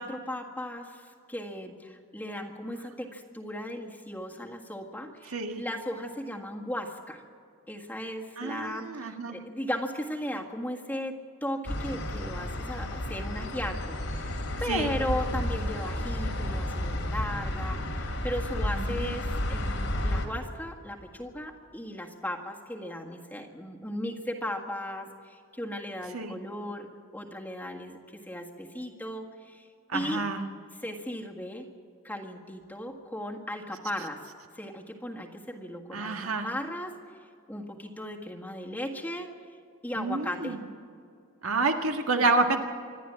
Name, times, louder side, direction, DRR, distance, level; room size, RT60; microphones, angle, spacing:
voice 1, 0.0-7.2 7.7-29.7 29.9-30.2 30.7-31.7 32.0-34.2 34.5-36.9 37.5-39.3 39.8-40.6, left 1 dB, 10° left, 1 dB, 1.7 m, -36 dB
voice 2, 5.3-5.6 8.4-9.4 14.7-14.9 18.6-19.2 26.1-26.3 29.9-30.4 35.9-36.5 40.0-40.6 41.4-42.6, right 3 dB, 85° right, 4 dB, 1.8 m, -29 dB
sound 1, 11.7-20.3, left 1 dB, 85° left, 3.2 m, -32 dB
26.0 x 11.5 x 8.9 m, 2.3 s
head